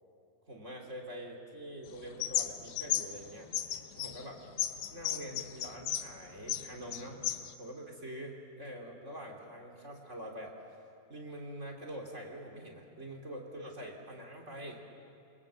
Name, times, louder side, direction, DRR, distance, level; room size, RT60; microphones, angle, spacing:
voice 1, 0.5-3.5 4.0-4.4 4.9-7.2 7.6-10.5 11.1-14.8, right 1 dB, 20° right, 0 dB, 2.9 m, -45 dB
sound 1, 1.9-3.2 3.5-6.1 6.4-7.5, left 11 dB, 70° left, 2.0 m, -34 dB
28.0 x 25.0 x 7.6 m, 2.8 s
omnidirectional pair, 4.3 m